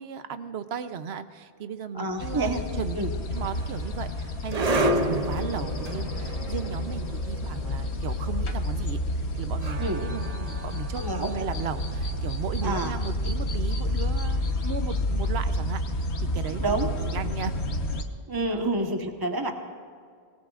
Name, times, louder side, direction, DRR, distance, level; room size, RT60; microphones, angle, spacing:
voice 1, 0.0-2.5 2.8-3.0 3.3-16.6 17.0-17.5 18.5-18.7, right 7 dB, 75° right, 10 dB, 1.0 m, -36 dB
voice 2, 1.9-2.6 2.9-3.1 9.8-10.0 11.0-11.3 12.6-12.9 16.6-17.1 18.3-19.5, right 2 dB, 20° right, 3 dB, 1.2 m, -28 dB
sound 1, 2.2-18.0, left 1 dB, 80° left, 1.4 m, -30 dB
sound 2, 3.3-14.5, right 1 dB, 40° right, 0.8 m, -33 dB
26.0 x 20.0 x 2.5 m, 2.1 s
omnidirectional pair, 1.1 m